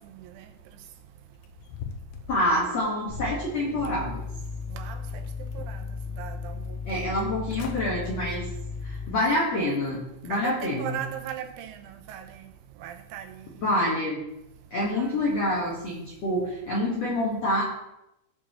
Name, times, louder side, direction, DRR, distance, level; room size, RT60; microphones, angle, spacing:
voice 1, 0.1-0.5 4.7-5.0 5.6-5.8 6.2-7.0 10.3-12.4 12.8-13.4 15.0-15.1, right 10 dB, 85° right, 6 dB, 3.4 m, -38 dB
sound 1, 1.4-3.4 3.9-4.7 5.1-5.9 6.3-6.4 7.2-7.3 7.5-7.8 8.3-8.5 9.0-9.1, left 7 dB, 85° left, 2.4 m, -43 dB
voice 2, 2.3-4.2 6.8-8.5 8.8-11.0 13.6-14.2 14.7-17.6, left 1 dB, 70° left, -4 dB, 1.6 m, -27 dB
sound 2, 3.1-9.3, left 5 dB, 10° right, 3.0 m, -36 dB
17.0 x 6.2 x 3.1 m, 0.86 s
omnidirectional pair, 5.6 m